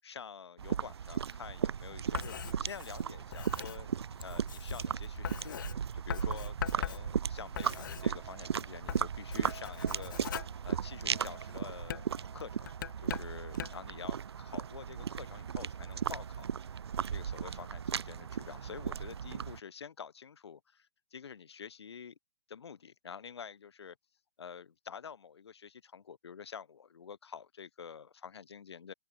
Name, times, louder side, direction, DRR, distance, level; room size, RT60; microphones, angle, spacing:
voice 1, 0.0-3.9 4.2-12.0 12.3-12.7 13.0-16.6 17.1-22.2 22.5-24.0 24.4-28.9, left 7 dB, 80° left, 7.3 m, -48 dB
sound 1, 0.6-19.6, right 7 dB, 80° right, 1.7 m, -36 dB
Writing, 1.9-8.5 8.8-11.3 11.8-13.9, left 10 dB, 50° left, 0.9 m, -42 dB
open air
hypercardioid pair, 175°, 14 cm